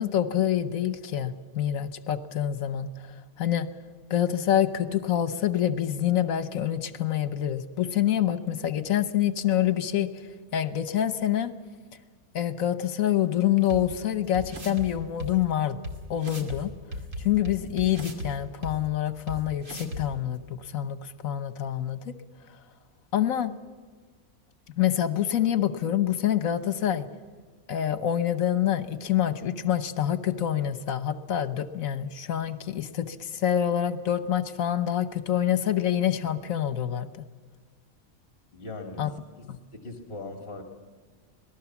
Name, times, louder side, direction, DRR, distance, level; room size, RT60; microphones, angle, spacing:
voice 1, 0.0-3.7 4.1-10.1 10.5-11.5 12.3-15.8 16.1-16.7 17.2-22.0 23.1-23.5 24.8-27.1 27.7-37.1 39.0-39.1 39.5-39.6, left 11 dB, 75° left, 12 dB, 1.4 m, -26 dB
sound 1, 13.7-13.8 14.3-14.9 15.2-15.3 15.8-15.9 16.2-16.6 16.9-18.3 18.6-18.7 19.3-19.4 19.6-20.0, equal, 65° right, 2.8 m, -35 dB
voice 2, 38.5-39.1 39.4-40.6, left 2 dB, 45° left, 3 dB, 2.4 m, -40 dB
26.0 x 18.5 x 7.2 m, 1.5 s
omnidirectional pair, 1.5 m